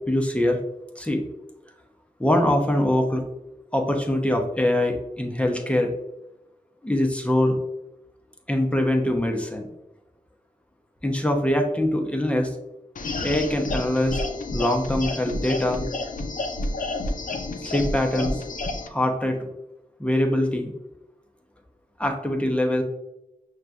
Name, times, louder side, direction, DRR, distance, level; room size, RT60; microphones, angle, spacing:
voice 1, 0.1-0.6 1.0-1.2 2.2-3.2 3.7-5.9 6.8-7.6 8.5-9.7 11.0-12.6 13.2-14.2 14.5-15.8 17.6-18.4 18.9-19.4 20.0-20.7 22.0-22.8, left 1 dB, 10° left, 2 dB, 0.7 m, -23 dB
sound 1, 13.0-18.9, left 2 dB, 65° left, 0.5 m, -30 dB
5.7 x 2.3 x 2.5 m, 0.89 s
wide cardioid pair, 60°, 14 cm